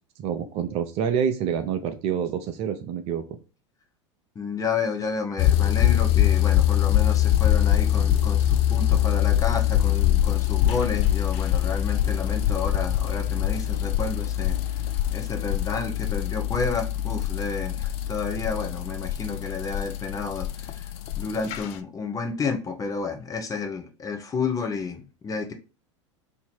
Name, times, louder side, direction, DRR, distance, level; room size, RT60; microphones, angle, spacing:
voice 1, 0.2-3.2, right 8 dB, 40° right, 7 dB, 0.6 m, -27 dB
voice 2, 4.3-14.6 15.1-20.9 21.2-25.5, left 4 dB, 20° left, 4 dB, 0.8 m, -31 dB
sound 1, 5.4-21.7, left 12 dB, 40° left, 0.4 m, -23 dB
2.8 x 2.7 x 4.2 m, 0.32 s
figure-of-eight pair, 85°, 16 cm